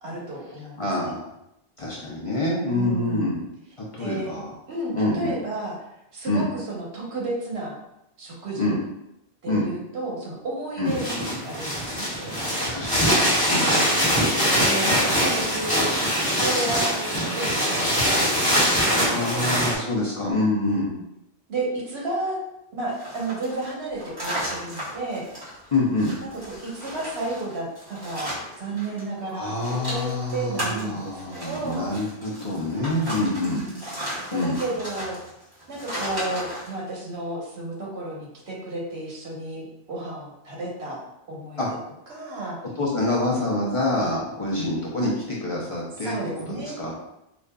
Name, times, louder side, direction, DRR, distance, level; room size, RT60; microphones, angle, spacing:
voice 1, 0.0-1.1 2.7-3.4 4.0-4.4 4.7-5.7 6.1-7.8 8.2-8.7 9.4-12.5 13.5-13.8 14.5-15.9 16.2-19.5 20.9-21.0 21.5-22.4 22.7-25.2 26.2-28.3 28.6-31.9 33.1-33.8 34.3-35.2 35.7-41.0 41.3-41.6 42.1-42.6 44.5-44.7 46.0-46.8, right 2 dB, 80° right, -3 dB, 1.2 m, -32 dB
voice 2, 0.8-1.3 1.8-3.4 3.8-4.5 4.9-5.3 6.3-6.5 8.6-8.8 9.5-9.7 10.8-10.9 12.7-13.1 13.5-13.7 19.1-20.9 25.7-26.1 29.3-33.6 34.3-34.6 41.6-41.7 42.8-46.1 46.5-46.9, left 2 dB, 35° left, -5 dB, 0.6 m, -26 dB
sound 1, 10.8-19.7, equal, 10° left, 1.2 m, -22 dB
sound 2, 22.9-29.0 29.3-36.7, equal, 20° right, 1.6 m, -35 dB
4.9 x 2.5 x 2.2 m, 0.86 s
omnidirectional pair, 1.1 m